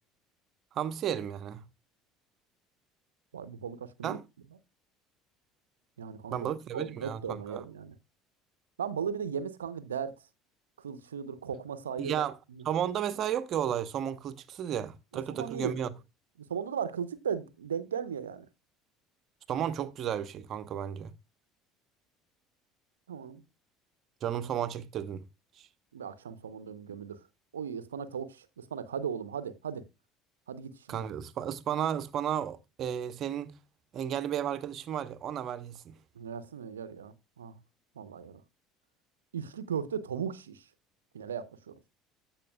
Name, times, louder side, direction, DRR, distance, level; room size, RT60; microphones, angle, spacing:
voice 1, 0.7-1.6 4.0-4.2 6.3-7.7 12.0-12.3 12.6-15.9 19.5-21.1 24.2-25.2 30.9-33.6 33.9-35.9, right 9 dB, 45° right, 0.9 m, -33 dB
voice 2, 3.3-4.2 6.0-6.4 6.7-7.9 8.8-10.2 10.8-12.6 15.3-15.8 16.5-18.4 23.1-23.4 25.9-27.2 27.5-29.8 30.5-31.0 36.1-37.6 38.0-38.4 39.3-40.6 41.1-41.8, right 7 dB, 80° right, 0.7 m, -37 dB
15.5 x 5.8 x 2.3 m
figure-of-eight pair, 65°, 0 cm